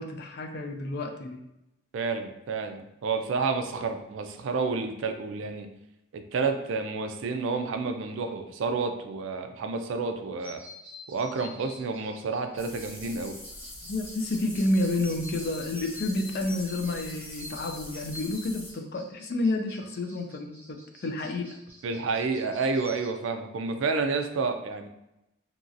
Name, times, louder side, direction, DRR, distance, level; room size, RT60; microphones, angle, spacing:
voice 1, 0.0-1.4 13.8-21.6, left 2 dB, 50° left, 4 dB, 0.4 m, -30 dB
voice 2, 1.9-5.7 6.1-10.6 11.1-13.4 21.8-24.9, right 4 dB, 65° right, 7 dB, 0.3 m, -30 dB
sound 1, 10.4-23.1, left 1 dB, 5° right, 0.9 m, -48 dB
sound 2, 12.6-18.7, left 1 dB, 80° left, 1.3 m, -44 dB
2.9 x 2.7 x 2.4 m, 0.89 s
head